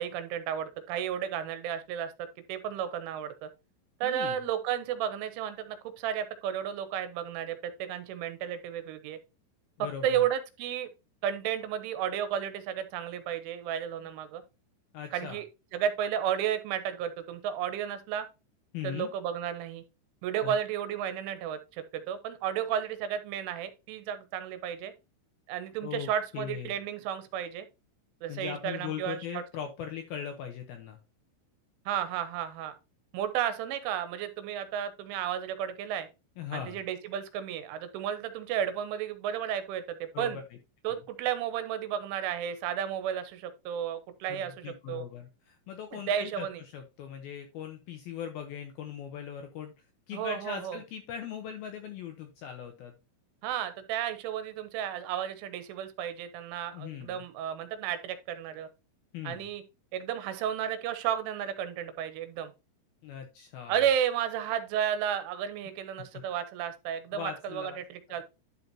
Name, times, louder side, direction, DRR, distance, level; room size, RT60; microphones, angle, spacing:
voice 1, 0.0-3.5 4.0-9.2 9.8-10.9 11.2-14.4 15.1-15.5 15.7-18.3 18.8-19.8 20.2-24.9 25.5-27.7 28.2-29.4 31.9-32.8 33.1-36.1 36.5-40.4 40.8-45.1 45.9-46.6 50.1-50.8 53.4-58.7 59.2-59.6 59.9-62.5 63.7-68.2, right 9 dB, 85° right, 3.3 m, -33 dB
voice 2, 4.0-4.4 9.8-10.2 14.9-15.4 18.7-19.1 20.4-20.5 25.8-26.1 26.3-26.7 28.3-31.0 36.4-36.8 40.1-40.4 40.9-41.0 44.3-46.5 46.7-49.7 50.1-52.9 56.7-57.2 59.1-59.5 63.0-63.8 67.1-67.8 68.1-68.2, left 8 dB, 80° left, 2.1 m, -40 dB
11.5 x 5.4 x 2.8 m
omnidirectional pair, 5.6 m